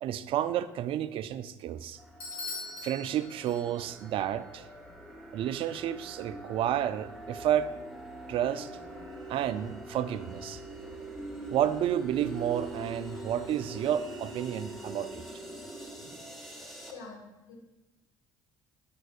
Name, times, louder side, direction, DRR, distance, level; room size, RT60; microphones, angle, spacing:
voice 1, 0.0-2.0 2.8-4.7 5.3-7.7 8.3-8.7 9.3-10.6 11.5-15.3, right 10 dB, 60° right, 13 dB, 0.4 m, -31 dB
sound 1, 2.0-16.9, right 1 dB, ahead, 1.6 m, -43 dB
Bell / Doorbell, 2.2-4.0, left 3 dB, 55° left, 2.6 m, -41 dB
voice 2, 15.9-16.2 16.9-17.5, left 4 dB, 90° left, -1 dB, 1.8 m, -47 dB
9.0 x 6.4 x 2.5 m, 1.0 s
hypercardioid pair, 70°, 11 cm